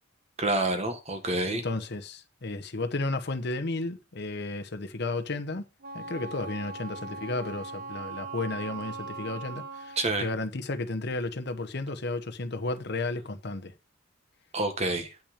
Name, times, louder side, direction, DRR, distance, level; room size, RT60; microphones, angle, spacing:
voice 1, 0.4-1.6 10.0-10.2 14.5-15.1, right 2 dB, 35° right, 1.5 m, -28 dB
voice 2, 1.5-5.6 5.9-13.7, left 2 dB, 55° left, 0.9 m, -33 dB
Wind instrument woodwind instrument, 5.8-10.1, right 4 dB, 50° right, 1.2 m, -40 dB
8.7 x 6.0 x 5.1 m
head